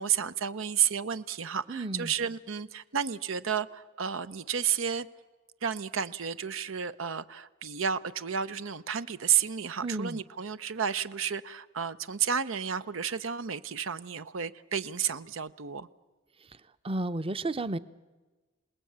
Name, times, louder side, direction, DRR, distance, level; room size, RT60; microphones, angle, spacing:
voice 1, 0.0-5.1 5.6-15.9, right 8 dB, 85° right, 13 dB, 0.8 m, -31 dB
voice 2, 1.7-2.1 9.8-10.2 16.8-17.8, right 2 dB, 30° right, 15 dB, 0.7 m, -32 dB
27.5 x 19.5 x 8.7 m, 1.3 s
head